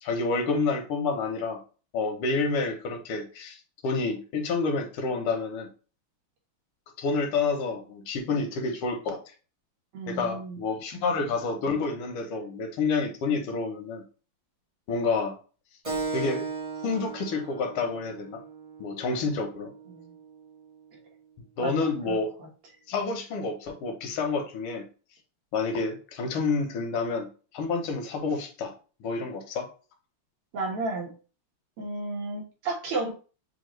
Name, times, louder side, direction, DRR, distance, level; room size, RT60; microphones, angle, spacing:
voice 1, 0.0-1.6 1.9-5.7 7.0-9.2 10.1-14.0 14.9-15.4 16.1-16.5 16.8-18.4 18.8-19.7 21.6-22.3 22.9-24.9 25.5-27.3 27.5-28.7 29.0-29.7, left 4 dB, 90° left, 4 dB, 1.8 m, -29 dB
voice 2, 9.9-10.6 19.9-20.1 21.6-22.5 30.5-31.1 31.8-33.1, right 3 dB, 90° right, -1 dB, 2.4 m, -33 dB
Keyboard (musical), 15.8-20.9, right 4 dB, 30° right, 0.6 m, -37 dB
6.8 x 2.4 x 3.1 m, 0.36 s
omnidirectional pair, 2.4 m